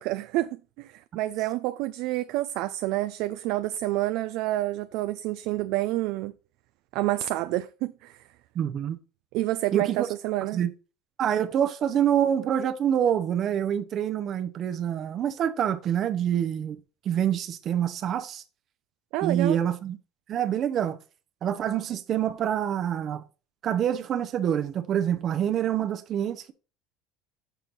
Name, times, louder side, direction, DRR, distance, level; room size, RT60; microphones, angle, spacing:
voice 1, 0.0-6.3 6.9-8.3 9.3-10.6 19.1-19.6, right 16 dB, 65° right, 0.3 m, -28 dB
voice 2, 8.5-9.0 9.7-10.1 10.5-10.7 11.2-16.8 17.0-18.4 19.2-20.0 20.3-21.0 21.4-23.2 23.6-26.5, right 9 dB, 40° right, 0.7 m, -26 dB
6.9 x 4.5 x 5.3 m
cardioid pair, 140°, 0 cm